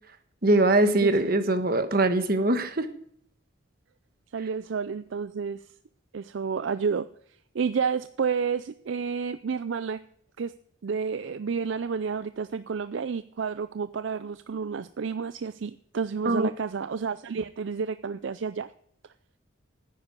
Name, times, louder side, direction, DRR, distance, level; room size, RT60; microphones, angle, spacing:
voice 1, 0.4-2.9 16.2-16.5, right 2 dB, 45° right, 9 dB, 1.2 m, -22 dB
voice 2, 4.3-5.6 6.1-7.1 7.5-10.0 10.4-10.5 10.8-18.7, right 6 dB, 65° right, 13 dB, 0.4 m, -30 dB
9.9 x 9.8 x 9.0 m, 0.65 s
head